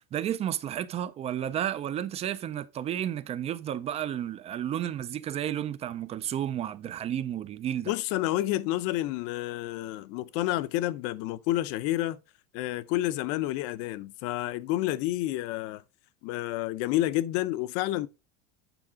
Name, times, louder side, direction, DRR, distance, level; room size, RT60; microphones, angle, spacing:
voice 1, 0.0-7.9, right 10 dB, 20° right, 0.3 m, -32 dB
voice 2, 7.9-12.2 12.5-15.8 16.2-18.1, left 15 dB, 55° left, 0.6 m, -29 dB
9.0 x 4.7 x 3.4 m
cardioid pair, 155°, 30 cm